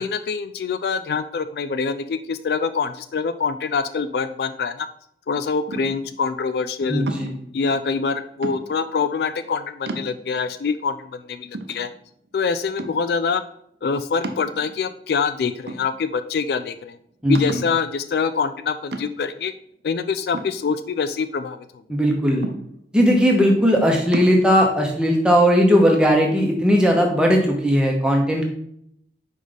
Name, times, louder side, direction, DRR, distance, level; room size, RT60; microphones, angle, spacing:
voice 1, 0.0-4.9 5.3-7.1 7.5-11.9 12.3-13.4 13.8-17.0 17.3-19.5 19.8-21.6, left 5 dB, 60° left, 11 dB, 0.3 m, -25 dB
sound 1, 5.7-6.1 7.1-7.5 8.4-8.9 9.4-9.5 9.9-10.5 11.0-11.1 11.5-12.3 12.8-13.2 14.2-15.0 15.7-16.3 16.6-16.7 17.3-17.8 18.9-19.4 20.3-21.2 22.4-23.0 24.1-24.4, right 2 dB, 75° right, 0.7 m, -33 dB
voice 2, 6.9-7.3 17.2-17.4 21.9-22.5 22.9-28.5, equal, 5° right, 0 dB, 1.0 m, -17 dB
5.1 x 5.0 x 3.9 m, 0.69 s
head